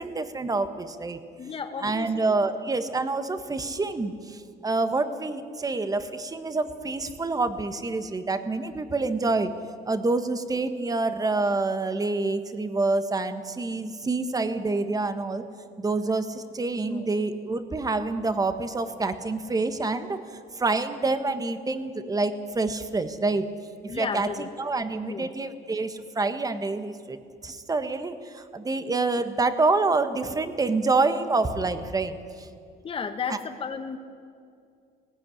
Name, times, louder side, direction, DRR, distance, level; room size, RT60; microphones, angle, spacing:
voice 1, 0.0-1.2 1.8-9.5 9.9-15.5 15.8-23.5 23.8-27.2 27.4-32.5 33.3-33.4, right 3 dB, 20° right, 10 dB, 1.5 m, -27 dB
voice 2, 1.4-2.1 16.9-17.1 23.9-24.5 25.0-25.3 32.8-34.0, left 6 dB, 35° left, 6 dB, 1.3 m, -33 dB
19.0 x 16.0 x 10.0 m, 2.4 s
cardioid pair, 110°, 17 cm